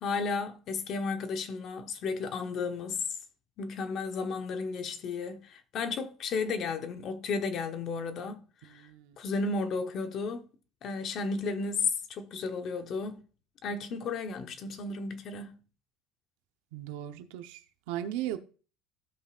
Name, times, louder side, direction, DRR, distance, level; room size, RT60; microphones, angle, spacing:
voice 1, 0.0-3.0 3.6-8.9 9.2-10.5 10.8-13.2 13.6-15.6, left 4 dB, 35° left, 1.0 m, -33 dB
voice 2, 8.7-9.1 16.7-18.4, right 12 dB, 80° right, 1.0 m, -37 dB
16.0 x 5.5 x 2.5 m
cardioid pair, 170°, 0 cm